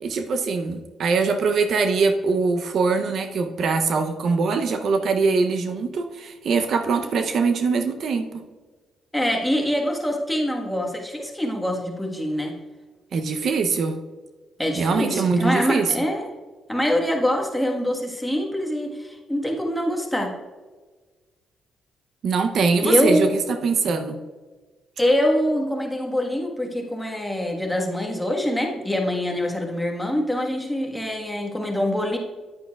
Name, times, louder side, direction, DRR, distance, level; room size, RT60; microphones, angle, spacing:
voice 1, 0.0-8.4 13.1-14.0 14.8-15.9 22.2-24.2, right 4 dB, 60° right, 7 dB, 0.6 m, -22 dB
voice 2, 9.1-12.6 14.6-16.3 16.7-20.3 22.8-23.3 25.0-32.2, left 1 dB, 5° left, 1 dB, 1.4 m, -24 dB
9.7 x 8.9 x 2.3 m, 1.3 s
cardioid pair, 90°, 0 cm